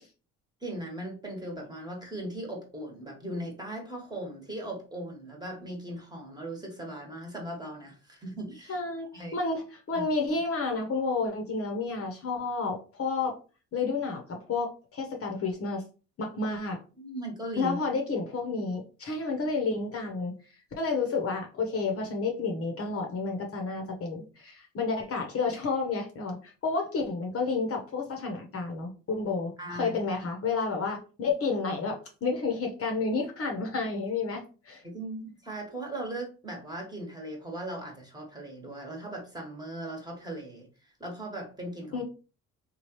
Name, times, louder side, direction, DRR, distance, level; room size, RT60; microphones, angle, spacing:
voice 1, 0.6-8.8 9.1-9.3 9.9-10.1 17.0-17.8 29.6-30.3 34.8-42.0, right 1 dB, 10° right, 0 dB, 1.2 m, -38 dB
voice 2, 8.7-9.1 9.3-13.3 13.7-15.8 16.2-16.8 17.6-20.3 20.8-34.8 41.9-42.0, left 4 dB, 45° left, 2 dB, 0.8 m, -30 dB
3.1 x 2.3 x 3.0 m, 0.35 s
supercardioid pair, 75°, 33 cm